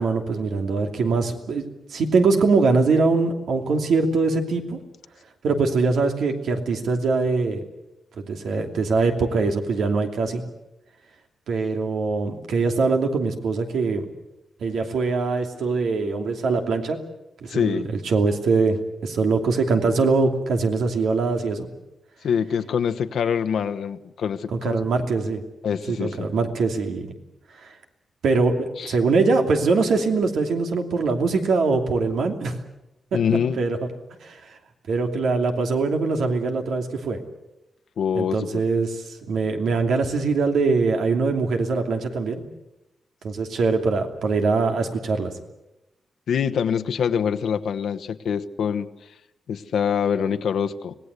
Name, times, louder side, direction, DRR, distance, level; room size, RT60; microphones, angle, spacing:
voice 1, 0.0-1.6 1.9-4.8 5.4-7.6 8.2-10.4 11.5-14.1 14.6-17.0 17.4-21.7 24.5-25.4 25.9-27.1 27.6-27.7 28.2-32.6 33.6-33.8 34.2-34.6 34.9-37.2 38.1-42.4 43.2-45.3, right 4 dB, 85° right, 4 dB, 2.8 m, -22 dB
voice 2, 17.5-17.9 22.2-24.8 25.6-26.3 28.8-28.9 33.1-33.6 38.0-38.6 46.3-48.9 49.5-50.9, left 7 dB, 85° left, 8 dB, 1.1 m, -25 dB
26.0 x 18.0 x 8.3 m, 0.93 s
wide cardioid pair, 140°, 0 cm